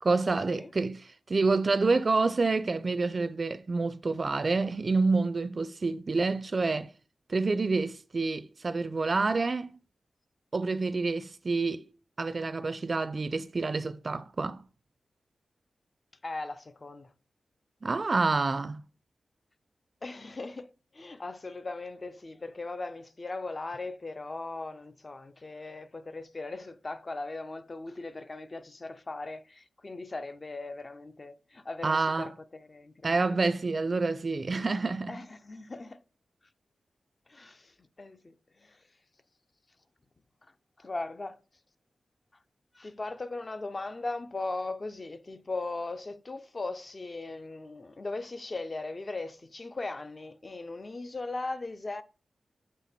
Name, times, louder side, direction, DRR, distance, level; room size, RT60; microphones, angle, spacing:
voice 1, 0.0-6.9 7.3-9.7 10.5-11.9 12.2-14.6 17.8-18.8 31.8-32.3 33.0-35.2, right 3 dB, 40° right, 0.3 m, -28 dB
voice 2, 16.2-17.1 20.0-20.7 20.9-33.4 35.1-36.0 37.3-38.8 40.8-41.4 42.7-52.0, left 3 dB, 35° left, 0.4 m, -38 dB
7.5 x 3.2 x 4.2 m
wide cardioid pair, 105°, 0 cm